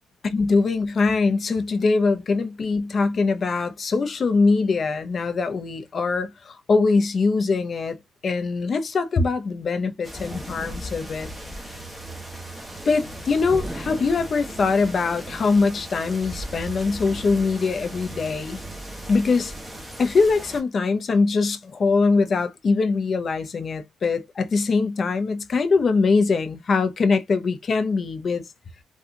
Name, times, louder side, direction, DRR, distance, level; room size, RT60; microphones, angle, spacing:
voice 1, 0.2-11.3 11.6-11.8 12.8-18.6 19.1-19.5 20.0-28.5, left 4 dB, 45° left, 0.7 m, -22 dB
sound 1, 10.0-20.6, right 1 dB, ahead, 1.1 m, -37 dB
3.7 x 2.3 x 2.7 m
cardioid pair, 90°, 0 cm